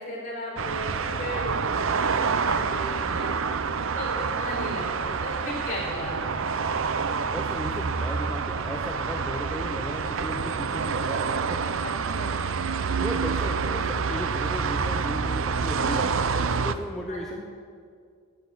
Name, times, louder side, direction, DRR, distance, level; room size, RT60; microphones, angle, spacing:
voice 1, 0.0-3.4 3.9-6.5 11.8-12.5 17.1-17.4, left 1 dB, 35° left, -4 dB, 4.6 m, -36 dB
sound 1, 0.6-16.7, right 5 dB, 65° right, 0.6 m, -27 dB
voice 2, 7.2-11.7 12.7-17.4, equal, ahead, -1 dB, 0.7 m, -36 dB
10.5 x 10.0 x 8.5 m, 2.2 s
head